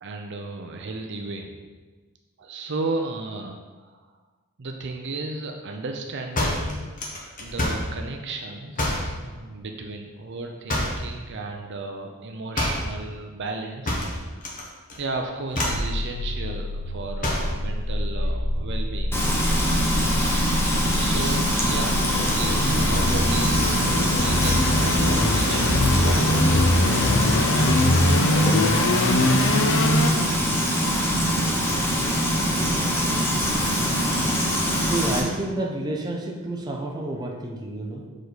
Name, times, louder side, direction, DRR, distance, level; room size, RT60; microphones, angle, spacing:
voice 1, 0.0-1.6 2.4-4.1 4.6-6.9 7.4-14.4 15.0-19.2 20.9-22.0 22.3-26.6, right 3 dB, 55° right, 3 dB, 0.6 m, -34 dB
sound 1, 6.4-7.9 8.8-9.1 10.7-11.1 12.5-12.9 13.9-14.6 14.9-15.2 15.5-15.9 17.2-17.6, left 1 dB, 35° left, 1.1 m, -26 dB
sound 2, 15.7-30.1, left 1 dB, 60° left, 0.6 m, -23 dB
Frying (food), 19.1-35.2, equal, 10° left, 0.9 m, -23 dB
voice 2, 34.8-38.1, right 2 dB, 20° right, -1 dB, 0.7 m, -30 dB
6.6 x 4.9 x 4.0 m, 1.3 s
head